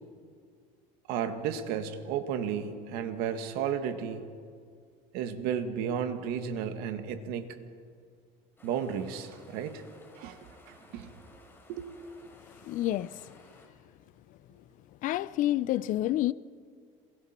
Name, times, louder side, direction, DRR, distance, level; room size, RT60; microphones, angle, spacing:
voice 1, 1.1-4.2 5.1-7.5 8.6-9.8 10.2-11.2 11.7-11.9, right 8 dB, 70° right, 1.8 m, -33 dB
sound 1, 8.6-13.7, left 2 dB, 15° left, 4.3 m, -57 dB
voice 2, 12.6-13.2 15.0-16.3, left 14 dB, 55° left, 0.6 m, -28 dB
27.5 x 22.0 x 4.5 m
cardioid pair, 125°, 16 cm